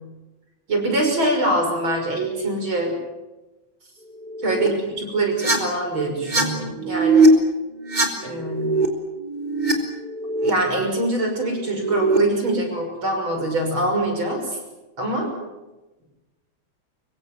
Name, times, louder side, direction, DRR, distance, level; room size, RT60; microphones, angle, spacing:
voice 1, 0.7-2.9 4.4-7.3 8.2-8.7 10.4-14.6 15.0-15.3, right 1 dB, 70° right, 3 dB, 6.9 m, -24 dB
sound 1, 4.2-4.7 5.3-5.6 6.1-6.4 6.7-7.3 7.7-8.9 9.2-9.7 10.0-10.5 11.5-12.2, right 4 dB, 20° right, 3.8 m, -21 dB
25.0 x 24.0 x 7.6 m, 1.1 s
omnidirectional pair, 2.3 m